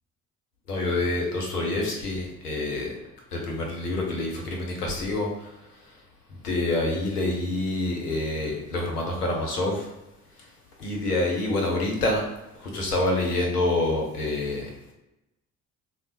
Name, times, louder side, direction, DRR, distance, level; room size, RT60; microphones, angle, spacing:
voice 1, 0.7-2.9 3.3-5.5 6.4-9.9 10.8-12.2 12.6-14.7, left 2 dB, 85° left, 0 dB, 0.7 m, -27 dB
3.3 x 2.1 x 2.8 m, 0.94 s
figure-of-eight pair, 50°, 45 cm